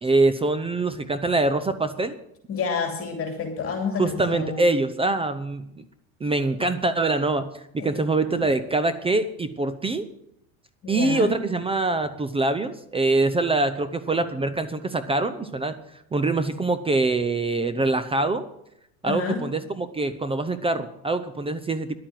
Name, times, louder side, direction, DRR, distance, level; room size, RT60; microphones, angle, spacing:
voice 1, 0.0-2.2 4.0-5.8 6.2-10.1 10.9-15.7 16.1-18.5 19.0-22.0, right 2 dB, 15° right, 12 dB, 0.6 m, -24 dB
voice 2, 2.5-4.7 7.8-8.5 10.8-11.4 19.0-19.5, left 5 dB, 30° left, 3 dB, 2.8 m, -29 dB
11.0 x 8.8 x 7.5 m, 0.77 s
supercardioid pair, 125°, 42 cm